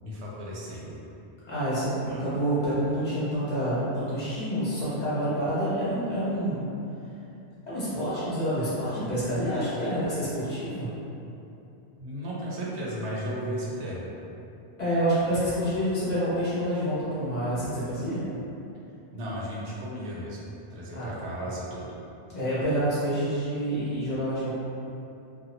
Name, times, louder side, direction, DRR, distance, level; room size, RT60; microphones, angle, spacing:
voice 1, 0.0-1.0 12.0-14.1 19.1-20.4 20.7-21.9, equal, 90° right, -5 dB, 0.9 m, -34 dB
voice 2, 1.5-6.6 7.7-10.9 14.8-18.2 20.9-21.1 22.3-24.5, equal, 40° left, -12 dB, 1.2 m, -28 dB
2.6 x 2.4 x 2.7 m, 2.8 s
omnidirectional pair, 1.1 m